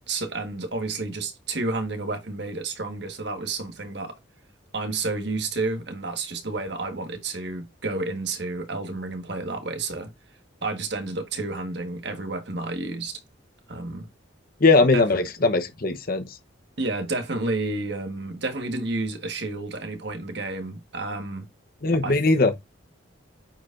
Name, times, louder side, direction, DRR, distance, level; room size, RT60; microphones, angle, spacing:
voice 1, 0.1-4.2 4.7-10.1 10.6-13.2 13.7-14.1 14.9-15.0 16.8-21.5 22.0-22.4, right 3 dB, 55° right, 1.5 m, -30 dB
voice 2, 14.6-16.3 21.8-22.6, left 3 dB, 45° left, 0.9 m, -20 dB
8.9 x 4.9 x 2.5 m
head